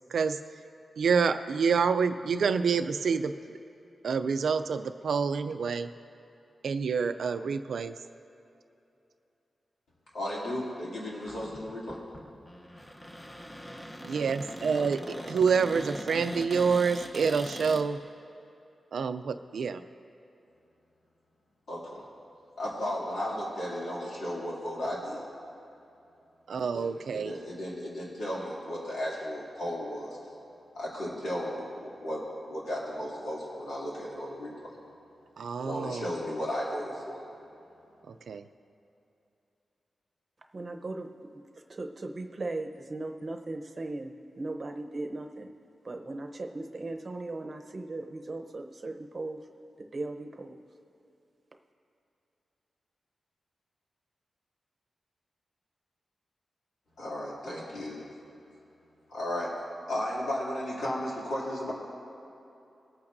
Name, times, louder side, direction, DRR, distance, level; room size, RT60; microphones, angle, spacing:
voice 1, 1.0-3.3 4.0-5.9 6.6-7.9 14.0-18.0 18.9-19.8 26.5-27.4 35.4-36.1 38.1-38.5, right 5 dB, 80° right, 9 dB, 0.4 m, -27 dB
voice 2, 10.1-12.0 14.8-15.3 21.7-22.0 22.6-25.2 26.7-30.2 30.7-32.2 32.5-34.7 35.6-37.2 57.0-58.1 59.1-59.5 59.9-61.7, left 1 dB, 90° left, -6 dB, 2.8 m, -35 dB
Cupboard open or close, 11.1-17.8, equal, 10° left, 0.9 m, -41 dB
voice 3, 40.5-41.1 41.5-45.5 45.8-49.4 49.8-50.6, right 2 dB, 40° right, 4 dB, 0.8 m, -38 dB
20.5 x 8.6 x 2.7 m, 2.8 s
wide cardioid pair, 90°, 0 cm